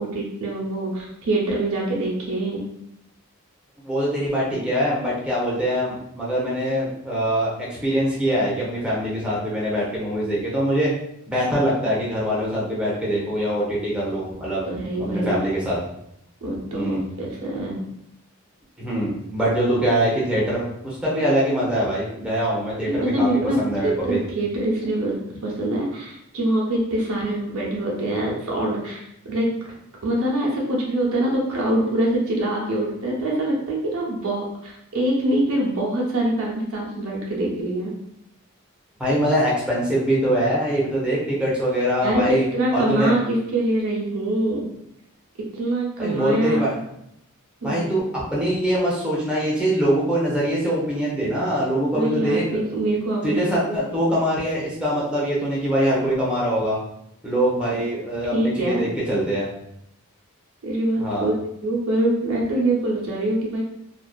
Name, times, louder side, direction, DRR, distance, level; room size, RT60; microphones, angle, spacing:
voice 1, 0.0-2.7 14.7-15.4 16.4-17.8 23.0-29.5 30.0-37.9 42.0-44.7 45.5-46.6 47.6-48.0 51.9-53.8 57.8-57.9 58.3-58.8 60.6-61.4 61.6-63.6, right 1 dB, 80° right, -3 dB, 0.7 m, -24 dB
voice 2, 3.8-10.9 11.3-14.7 15.0-15.8 16.7-17.0 18.8-23.3 23.6-24.2 39.0-42.4 42.7-43.1 46.0-46.7 47.6-52.6 53.2-56.8 57.2-59.5 61.0-61.3, equal, 5° right, -6 dB, 0.7 m, -23 dB
2.5 x 2.3 x 2.3 m, 0.77 s
head